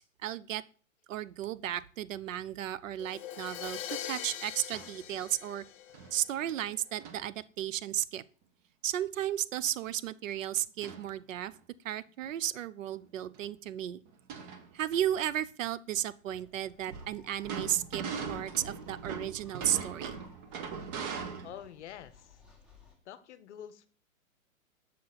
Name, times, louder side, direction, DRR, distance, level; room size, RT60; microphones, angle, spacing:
voice 1, 0.2-0.6 1.1-3.8 4.1-5.6 6.1-8.2 8.8-11.5 11.8-14.0 14.7-18.0 18.3-20.2, right 11 dB, 70° right, 17 dB, 0.5 m, -34 dB
Crash cymbal, 3.0-6.8, left 11 dB, 25° left, 0.5 m, -42 dB
sound 1, 4.7-5.0 5.9-6.1 6.5-6.6 7.0-7.3 10.8-11.1 11.5-11.6 12.9-13.0 13.3-13.5 14.1-15.0 16.9-21.7, right 6 dB, 30° right, 0.7 m, -40 dB
sound 2, 16.3-23.0, left 4 dB, 5° right, 1.2 m, -60 dB
voice 2, 21.4-22.4 23.0-23.9, left 10 dB, 55° left, 13 dB, 0.7 m, -47 dB
6.6 x 4.0 x 3.9 m, 0.39 s
hypercardioid pair, 130°, 41 cm